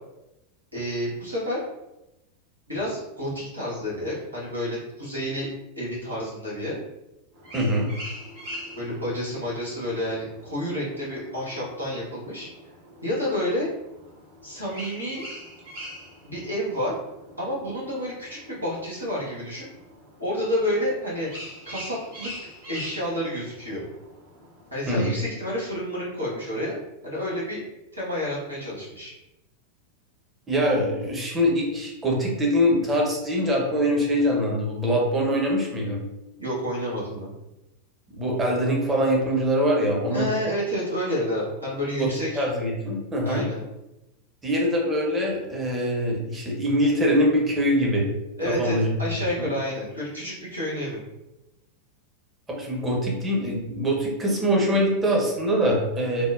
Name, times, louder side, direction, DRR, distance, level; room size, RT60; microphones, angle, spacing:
voice 1, 0.7-1.6 2.7-5.5 5.8-6.8 8.8-12.5 13.0-13.7 14.4-15.2 16.2-16.9 17.4-19.7 20.2-21.3 21.7-22.3 22.7-23.8 24.7-27.6 27.9-29.1 36.4-37.3 40.1-42.5 43.2-43.6 48.4-51.0, equal, 85° right, -8 dB, 1.3 m, -29 dB
sound 1, 7.3-25.1, left 1 dB, 55° right, 1.4 m, -43 dB
voice 2, 7.5-7.9 24.9-25.1 30.5-36.0 38.1-40.3 42.0-42.1 42.4-43.4 44.4-48.1 48.4-49.0 49.4-49.5 52.5-56.3, equal, 15° right, -2 dB, 0.9 m, -23 dB
3.4 x 2.1 x 2.5 m, 0.94 s
figure-of-eight pair, 90°, 0 cm